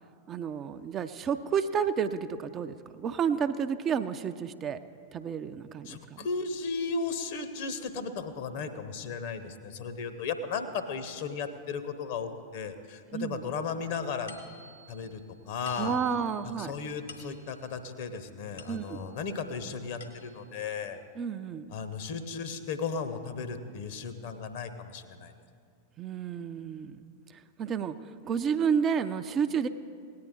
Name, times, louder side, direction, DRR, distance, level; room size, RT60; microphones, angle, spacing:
voice 1, 0.3-4.8 5.1-6.3 13.1-13.4 15.8-16.7 18.7-19.0 21.2-21.6 26.0-27.1 27.6-28.0 28.2-29.7, right 7 dB, 30° right, 9 dB, 0.4 m, -30 dB
voice 2, 5.8-14.4 14.9-16.0 16.4-21.0 21.7-25.3, left 5 dB, 50° left, 10 dB, 0.9 m, -35 dB
sound 1, 14.3-19.3 19.7-20.6, left 3 dB, 70° left, 1.3 m, -52 dB
18.0 x 9.5 x 3.7 m, 2.2 s
figure-of-eight pair, 90°, 0 cm